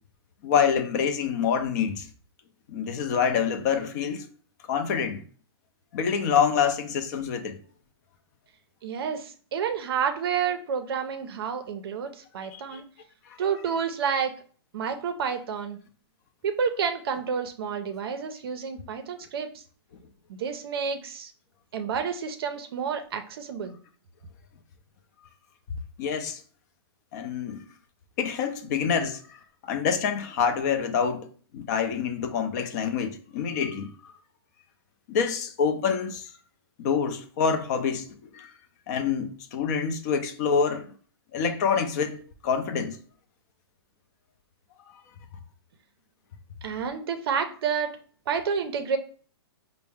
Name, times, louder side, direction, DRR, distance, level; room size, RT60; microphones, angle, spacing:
voice 1, 0.4-2.1 2.7-4.3 4.7-5.2 5.9-7.6 12.7-12.8 26.0-26.4 27.1-27.6 28.2-31.3 31.5-34.1 35.1-36.3 36.8-38.5 38.9-40.9 41.3-43.0, left 6 dB, 40° left, 0.5 m, -26 dB
voice 2, 8.8-12.8 13.4-14.3 14.7-15.8 16.4-19.6 20.3-21.3 21.7-23.8 46.6-48.0 48.3-49.0, right 6 dB, 65° right, 0.5 m, -29 dB
4.2 x 2.0 x 3.4 m
hypercardioid pair, 150°, 14 cm